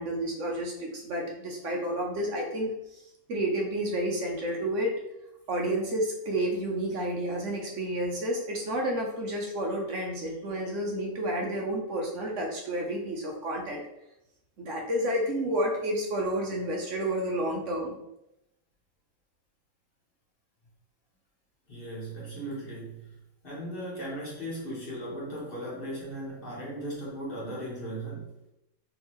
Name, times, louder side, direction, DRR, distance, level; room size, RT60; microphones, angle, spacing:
voice 1, 0.0-3.0 3.3-4.9 5.5-13.8 14.6-18.0, right 1 dB, 65° right, 0 dB, 1.0 m, -30 dB
voice 2, 21.7-23.1 23.4-28.2, right 1 dB, 40° left, -5 dB, 1.4 m, -37 dB
3.8 x 3.4 x 3.1 m, 0.86 s
omnidirectional pair, 1.4 m